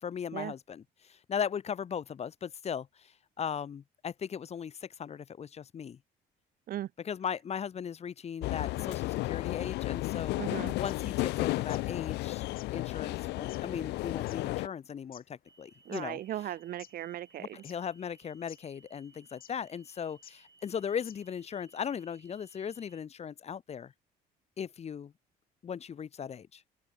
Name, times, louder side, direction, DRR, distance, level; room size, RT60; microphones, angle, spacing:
voice 1, 0.0-6.0 7.0-10.4 10.7-12.4 12.7-16.2 17.4-23.9 24.6-25.1 25.6-26.6, left 7 dB, 40° left, 1.6 m, -38 dB
sound 1, 8.4-14.7, left 20 dB, 85° left, 1.0 m, -33 dB
voice 2, 10.4-10.7 15.8-17.5, right 12 dB, 60° right, 1.0 m, -37 dB
sound 2, 10.8-11.9 12.2-12.3 12.5-16.1 16.6-17.3 17.6-18.2 18.5-18.6 19.4-19.7 20.2-20.4 20.7-20.8 21.0-21.4, left 11 dB, 60° left, 7.3 m, -54 dB
sound 3, 15.4-23.0, right 4 dB, 25° right, 3.9 m, -63 dB
open air
cardioid pair, 110°, 17 cm